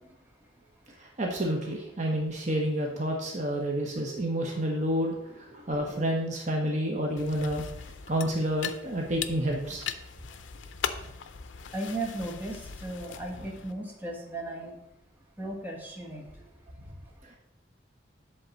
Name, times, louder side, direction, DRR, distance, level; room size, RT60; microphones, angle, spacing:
voice 1, 1.0-7.6 8.1-9.9 13.4-13.5, equal, 40° right, 0 dB, 1.0 m, -29 dB
sound 1, 7.2-13.7, left 7 dB, 85° left, 0.5 m, -39 dB
voice 2, 11.7-12.6 12.8-14.7 15.4-16.2, right 2 dB, 10° right, -2 dB, 1.3 m, -36 dB
7.8 x 3.7 x 6.4 m, 0.80 s
head